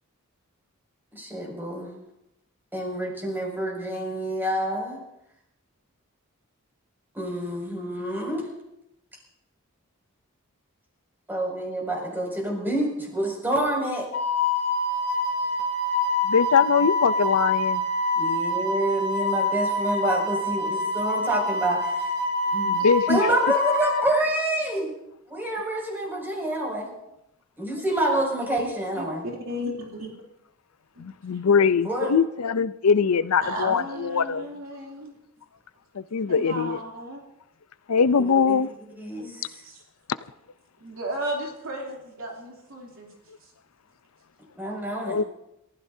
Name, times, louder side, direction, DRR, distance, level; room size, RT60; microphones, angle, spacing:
voice 1, 1.1-1.9 2.7-5.0 7.1-8.4 11.3-14.1 18.2-22.1 22.5-22.8 23.1-25.0 25.3-26.9 27.6-29.2 31.8-32.1 38.5-38.6 39.0-39.6 44.5-45.2, right 1 dB, 10° right, 6.2 m, -27 dB
Wind instrument woodwind instrument, 14.1-24.0, left 2 dB, 45° left, 2.0 m, -26 dB
voice 2, 16.2-17.9 22.6-23.2 31.0-34.4 35.9-36.8 37.9-38.7 45.0-45.2, left 6 dB, 85° left, 0.6 m, -22 dB
voice 3, 28.9-30.1 31.0-31.1 33.4-35.1 36.3-37.2 39.6-39.8 40.8-43.1, equal, 65° right, 3.2 m, -34 dB
29.5 x 15.0 x 2.8 m
head